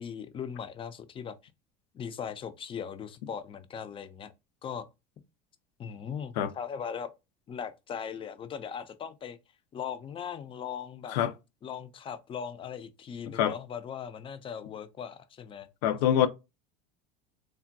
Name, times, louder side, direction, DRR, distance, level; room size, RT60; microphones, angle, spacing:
voice 1, 0.0-1.4 1.9-4.3 4.6-4.9 5.8-7.1 7.5-9.4 9.7-11.2 11.6-15.7, left 7 dB, 25° left, 0.4 m, -39 dB
voice 2, 15.8-16.3, left 10 dB, 85° left, 0.5 m, -24 dB
3.4 x 2.2 x 2.5 m
supercardioid pair, 115°, 20 cm